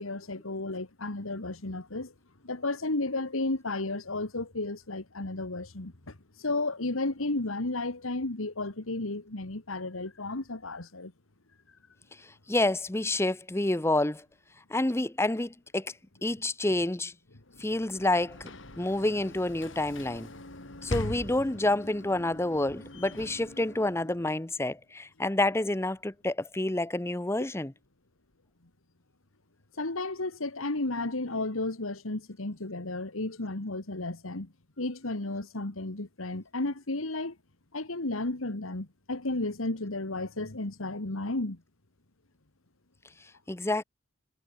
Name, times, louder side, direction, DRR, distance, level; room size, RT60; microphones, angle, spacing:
voice 1, 0.0-2.1 2.4-5.9 6.4-11.1 29.8-34.5 34.8-37.3 37.7-41.6, left 2 dB, 85° left, 2.0 m, -33 dB
voice 2, 12.2-14.2 14.7-15.9 16.2-17.1 17.6-18.5 18.8-20.3 20.8-27.7 43.5-43.8, left 2 dB, 10° left, 0.7 m, -28 dB
Sliding door / Slam, 17.5-24.5, left 1 dB, 65° left, 3.2 m, -41 dB
head